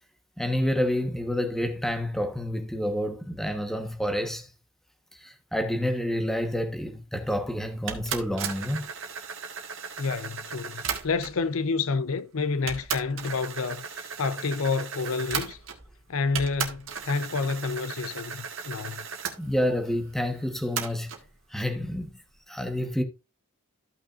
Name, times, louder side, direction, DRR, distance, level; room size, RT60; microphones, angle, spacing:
voice 1, 0.4-4.5 5.2-8.9 19.4-21.1 21.5-22.1 22.5-23.0, equal, ahead, 1.1 m, -28 dB
sound 1, 7.9-11.4 12.2-12.3 12.7-16.0 16.3-19.4 20.8-21.2, right 6 dB, 60° right, 1.6 m, -35 dB
voice 2, 10.0-15.6 16.1-19.1, left 4 dB, 70° left, 0.6 m, -29 dB
14.0 x 6.0 x 2.5 m
head